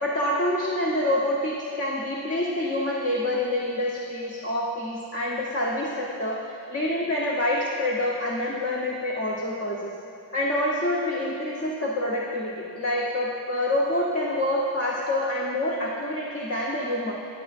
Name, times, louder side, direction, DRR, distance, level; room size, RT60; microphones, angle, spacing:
voice 1, 0.0-6.4 6.7-9.9 10.3-17.1, left 1 dB, 30° left, -4 dB, 1.0 m, -27 dB
13.5 x 8.2 x 2.6 m, 2.7 s
cardioid pair, 65°, 48 cm